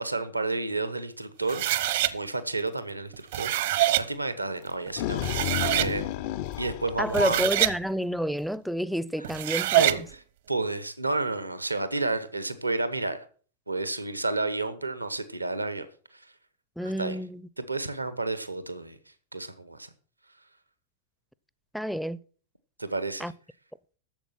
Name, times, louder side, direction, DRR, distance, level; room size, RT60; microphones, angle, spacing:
voice 1, 0.0-6.2 6.6-7.4 9.2-9.3 9.7-10.2 10.5-13.2 13.7-16.3 17.0-17.2 17.7-19.0 19.3-19.9 22.8-23.3, right 3 dB, 85° right, 1.2 m, -31 dB
sound 1, 1.5-2.1 3.1-4.0 4.9-5.0 5.2-5.9 7.0-7.8 9.2-10.0, right 14 dB, 55° right, 0.9 m, -25 dB
sound 2, 4.6-7.9, left 13 dB, 45° left, 0.6 m, -32 dB
voice 2, 7.0-10.1 16.8-17.4 21.7-22.2 23.2-23.3, equal, ahead, 0.5 m, -29 dB
12.0 x 7.4 x 5.8 m
figure-of-eight pair, 90°, 0 cm